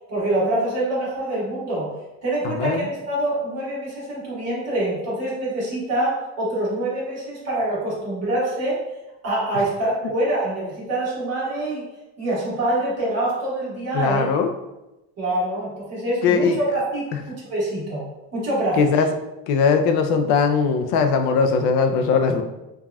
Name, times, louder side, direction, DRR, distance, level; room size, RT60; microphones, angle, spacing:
voice 1, 0.1-1.9 2.2-8.8 9.2-11.8 12.2-14.2 15.2-18.0 18.3-18.9, right 1 dB, 40° right, -7 dB, 1.4 m, -25 dB
voice 2, 2.4-2.9 13.9-14.5 16.2-16.8 18.7-19.1 19.5-22.4, left 5 dB, 80° left, 6 dB, 0.5 m, -20 dB
3.3 x 2.4 x 2.2 m, 0.97 s
cardioid pair, 115°, 38 cm